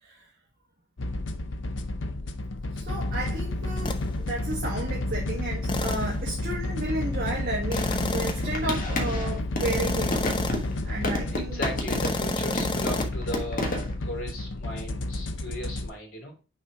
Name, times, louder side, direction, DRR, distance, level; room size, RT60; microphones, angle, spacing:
sound 1, 1.0-15.9, left 2 dB, 65° left, 0.7 m, -31 dB
voice 1, 2.7-10.2 10.8-11.6, right 2 dB, 45° right, 1.5 m, -33 dB
sound 2, 3.8-4.1 5.7-6.2 7.7-8.5 9.6-10.7 11.9-13.1, left 2 dB, 25° left, 0.6 m, -30 dB
sound 3, 7.7-9.7 10.1-12.3 12.6-13.9, left 1 dB, 45° left, 1.4 m, -31 dB
voice 2, 11.3-16.3, equal, 80° left, 3.1 m, -36 dB
6.2 x 4.3 x 4.9 m
head